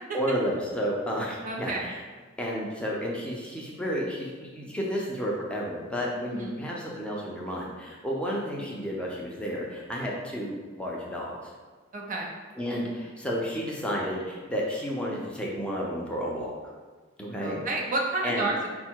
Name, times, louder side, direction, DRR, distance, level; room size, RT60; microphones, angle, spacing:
voice 1, 0.1-2.0 2.4-11.5 12.6-16.5 17.2-17.6 18.2-18.5, equal, 5° left, -4 dB, 0.6 m, -31 dB
voice 2, 1.4-1.9 6.3-6.6 11.9-12.3 17.4-18.7, right 2 dB, 40° right, -1 dB, 0.6 m, -30 dB
4.7 x 2.3 x 4.5 m, 1.4 s
head